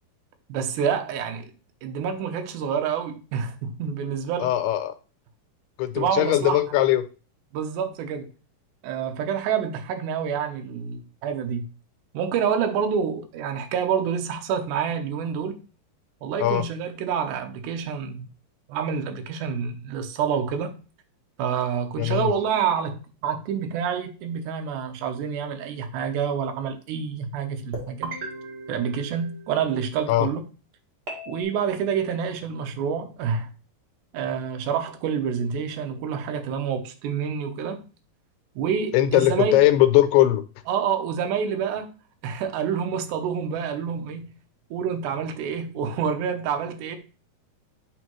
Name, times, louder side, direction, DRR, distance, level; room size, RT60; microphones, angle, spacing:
voice 1, 0.5-1.5 1.8-4.5 6.0-6.6 7.5-8.3 8.8-11.7 12.1-15.6 16.2-18.3 18.7-20.7 21.4-28.1 28.7-30.4 31.3-33.5 34.1-37.8 38.6-39.6 40.7-41.9 42.2-44.3 44.7-47.0, right 7 dB, 75° right, 1.9 m, -27 dB
voice 2, 4.4-4.9 5.8-7.0 16.4-16.6 22.0-22.3 30.1-30.3 38.9-40.4, left 13 dB, 85° left, 2.6 m, -20 dB
sound 1, 27.7-29.9 31.1-31.4, right 2 dB, 50° right, 1.2 m, -37 dB
9.7 x 3.4 x 3.0 m
omnidirectional pair, 4.5 m